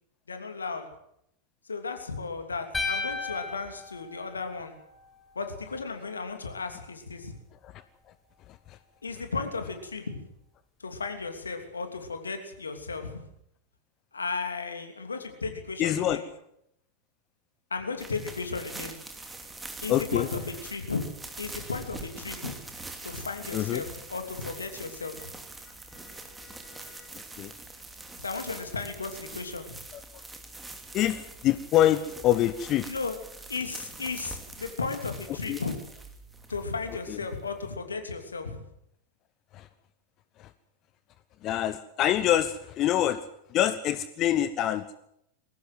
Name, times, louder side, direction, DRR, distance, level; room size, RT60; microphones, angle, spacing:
voice 1, 0.3-0.8 1.7-4.7 5.3-7.3 9.0-10.2 10.8-13.2 14.1-16.2 17.7-18.9 19.8-21.0 21.4-22.5 23.0-25.3 28.2-29.8 32.8-33.1 33.5-35.7 36.5-38.6, left 4 dB, 75° left, 6 dB, 3.0 m, -35 dB
sound 1, 2.7-5.0, left 3 dB, 10° left, 4.8 m, -34 dB
voice 2, 15.8-16.2 19.9-20.3 23.5-23.8 25.9-27.1 27.4-27.5 30.1-30.2 30.9-32.9 35.5-35.6 37.1-37.2 39.5-39.7 40.4-40.5 41.4-43.2 43.5-45.0, left 12 dB, 35° left, 14 dB, 0.9 m, -26 dB
sound 2, 18.0-37.7, right 2 dB, 10° right, 2.9 m, -44 dB
20.5 x 17.5 x 7.8 m, 0.76 s
figure-of-eight pair, 90°, 0 cm